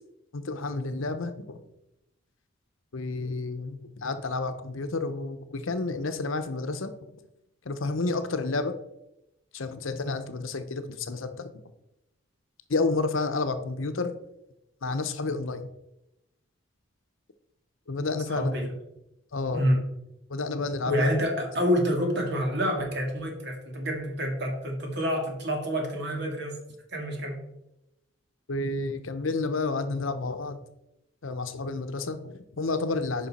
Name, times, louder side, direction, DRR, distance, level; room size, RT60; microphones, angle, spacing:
voice 1, 0.3-1.6 2.9-6.9 7.6-8.7 9.5-11.5 12.7-14.1 14.8-15.7 17.9-18.5 19.3-19.7 20.3-21.1 28.5-30.6 31.2-33.3, left 3 dB, 80° left, 9 dB, 0.8 m, -30 dB
voice 2, 18.3-18.7 19.5-19.8 20.8-26.6 26.9-27.4, equal, 55° right, 1 dB, 2.1 m, -27 dB
9.1 x 5.5 x 4.2 m, 0.89 s
head